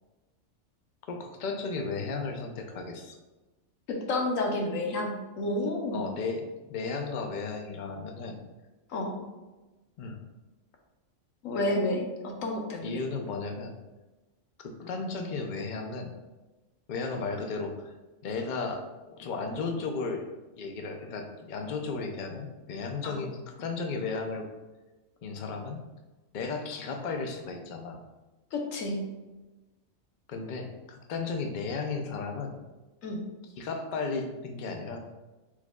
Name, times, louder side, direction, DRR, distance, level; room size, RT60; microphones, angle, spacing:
voice 1, 1.1-3.1 5.9-8.4 10.0-10.2 12.8-13.7 14.6-16.1 16.9-17.9 18.2-20.3 20.6-24.5 25.2-25.8 26.3-28.0 30.3-32.5 33.6-35.0, left 4 dB, 60° left, 4 dB, 0.5 m, -34 dB
voice 2, 3.9-6.0 8.9-9.2 11.4-13.0 23.0-23.2 28.5-29.0 33.0-33.2, left 2 dB, 75° left, 1 dB, 1.1 m, -30 dB
4.7 x 4.1 x 2.2 m, 1.1 s
omnidirectional pair, 1.4 m